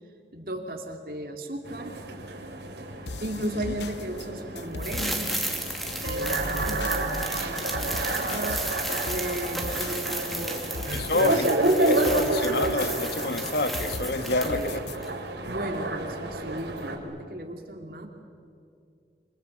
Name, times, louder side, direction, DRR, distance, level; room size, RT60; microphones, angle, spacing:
voice 1, 0.3-2.0 3.2-5.3 6.0-10.7 11.1-11.5 14.4-14.9 15.4-18.1, right 1 dB, 55° right, 2.6 m, -35 dB
sound 1, 1.6-17.0, right 2 dB, 90° right, 4.2 m, -30 dB
sound 2, 3.1-15.0, left 3 dB, 85° left, 0.9 m, -39 dB
sound 3, 4.8-14.7 15.0-15.1, right 1 dB, ahead, 2.6 m, -34 dB
voice 2, 10.9-14.7, left 2 dB, 65° left, 1.6 m, -28 dB
28.0 x 27.5 x 7.9 m
head